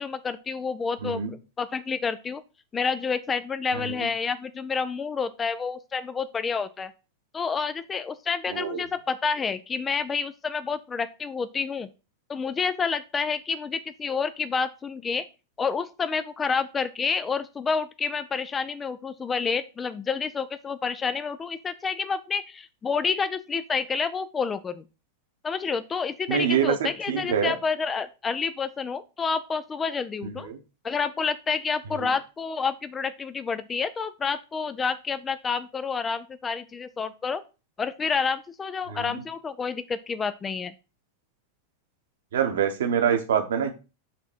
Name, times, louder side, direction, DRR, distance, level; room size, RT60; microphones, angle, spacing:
voice 1, 0.0-2.4 2.7-6.9 7.3-11.9 12.3-15.2 15.6-24.8 25.4-30.5 30.8-37.4 37.8-40.7, left 5 dB, 20° left, 13 dB, 0.4 m, -29 dB
voice 2, 8.5-8.8 26.3-27.5 30.2-30.6 32.0-32.1 38.9-39.2 42.3-43.7, right 8 dB, 60° right, 7 dB, 1.1 m, -26 dB
6.1 x 3.8 x 4.6 m, 0.30 s
figure-of-eight pair, 90°, 0 cm